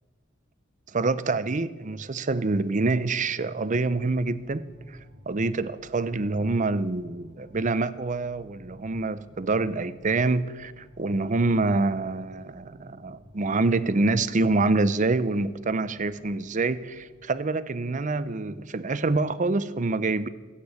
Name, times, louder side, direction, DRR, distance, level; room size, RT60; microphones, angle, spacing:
voice 1, 0.9-4.7 5.3-20.3, right 3 dB, 40° right, 14 dB, 0.6 m, -26 dB
sound 1, 3.9-17.3, equal, 60° right, 1.5 m, -54 dB
15.5 x 8.4 x 8.3 m, 1.4 s
head